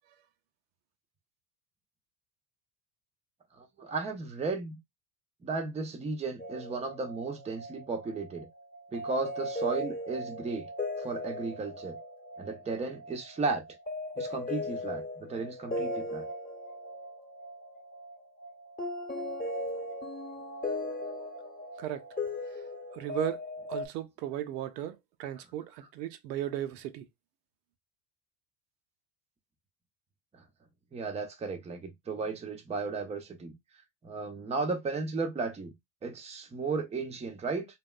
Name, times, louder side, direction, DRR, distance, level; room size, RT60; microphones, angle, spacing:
voice 1, 3.6-4.8 5.4-8.5 8.9-10.7 11.0-12.0 12.4-13.6 14.2-16.3 30.9-33.6 34.0-35.7 36.0-37.7, right 4 dB, 15° right, 0.6 m, -34 dB
sound 1, 6.4-23.9, left 1 dB, 15° left, 1.0 m, -38 dB
voice 2, 22.9-23.4 23.7-27.1, right 11 dB, 75° right, 0.6 m, -36 dB
2.8 x 2.1 x 2.2 m
hypercardioid pair, 85°, 50 cm